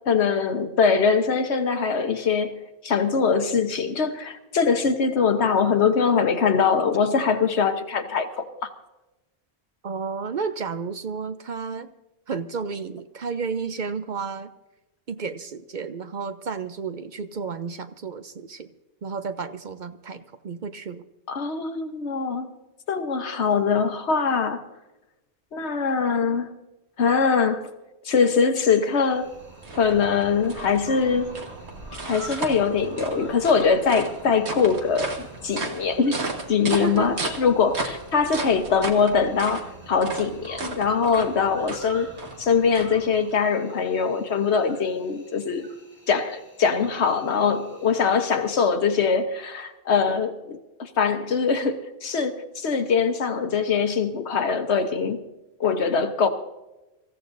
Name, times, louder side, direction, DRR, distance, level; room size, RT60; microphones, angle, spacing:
voice 1, 0.1-8.7 21.3-22.5 22.9-24.6 25.5-26.5 27.0-27.7 28.0-29.3 29.8-31.3 32.0-45.7 46.1-55.2 55.6-56.3, left 5 dB, 80° left, 1.3 m, -22 dB
voice 2, 9.8-11.9 12.3-14.5 15.1-18.7 19.0-21.1 36.7-37.2, right 5 dB, 50° right, 0.7 m, -32 dB
Cricket, 28.6-48.5, equal, 10° right, 2.5 m, -49 dB
sound 1, 28.9-43.4, right 3 dB, 90° right, 1.9 m, -35 dB
25.0 x 15.0 x 2.6 m
omnidirectional pair, 1.1 m